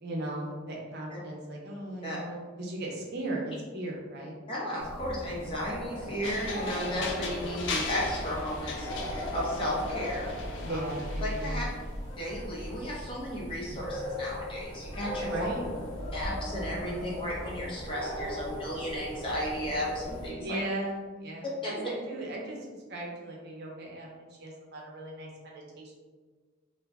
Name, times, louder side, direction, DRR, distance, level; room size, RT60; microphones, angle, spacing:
voice 1, 0.0-4.3 10.6-11.6 15.2-15.6 20.3-25.9, right 1 dB, 55° right, -2 dB, 0.6 m, -37 dB
voice 2, 4.5-10.8 11.2-11.6 12.2-15.3 16.1-20.4 21.6-21.8, equal, 25° left, -5 dB, 0.7 m, -34 dB
sound 1, 4.8-20.3, left 1 dB, 85° left, 1.0 m, -38 dB
sound 2, 6.2-11.9, left 3 dB, 65° left, 0.4 m, -38 dB
2.5 x 2.2 x 3.4 m, 1.4 s
head